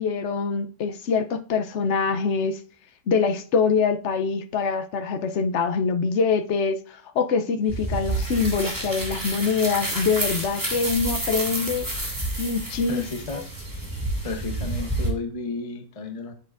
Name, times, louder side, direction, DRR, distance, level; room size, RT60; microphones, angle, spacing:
voice 1, 0.0-2.6 3.1-11.9 12.4-13.0 13.3-13.4, left 5 dB, 60° left, 0.8 m, -24 dB
sound 1, 7.7-15.1, right 1 dB, 10° right, 2.5 m, -29 dB
voice 2, 12.9-13.4 14.2-16.3, left 3 dB, 30° left, 0.7 m, -32 dB
8.5 x 7.6 x 2.5 m
omnidirectional pair, 1.8 m